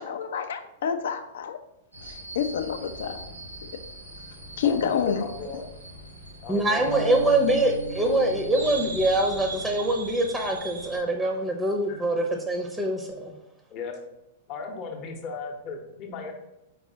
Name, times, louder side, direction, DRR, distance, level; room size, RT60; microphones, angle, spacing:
voice 1, 0.0-1.6 2.0-3.3 4.6-5.2, left 7 dB, 65° left, 9 dB, 0.4 m, -28 dB
sound 1, 1.9-11.0, right 2 dB, 90° right, 1.1 m, -41 dB
voice 2, 4.6-5.6 6.4-7.3 11.9-12.0 13.7-14.0 14.5-16.3, left 4 dB, 40° left, 2 dB, 0.8 m, -36 dB
voice 3, 6.5-13.3, right 1 dB, 10° right, 3 dB, 0.6 m, -24 dB
Bass guitar, 6.9-13.1, right 3 dB, 55° right, 0.4 m, -41 dB
4.4 x 3.9 x 2.7 m, 0.92 s
figure-of-eight pair, 100°, 0 cm